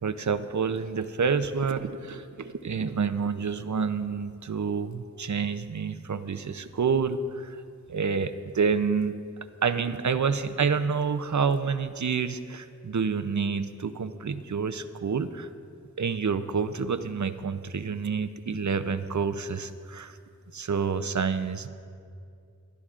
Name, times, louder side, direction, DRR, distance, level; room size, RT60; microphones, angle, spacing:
voice 1, 0.0-7.6 7.9-9.1 9.6-15.5 16.0-20.2 20.5-21.7, right 5 dB, 65° right, 11 dB, 0.6 m, -28 dB
21.5 x 12.0 x 2.5 m, 2.4 s
wide cardioid pair, 50°, 31 cm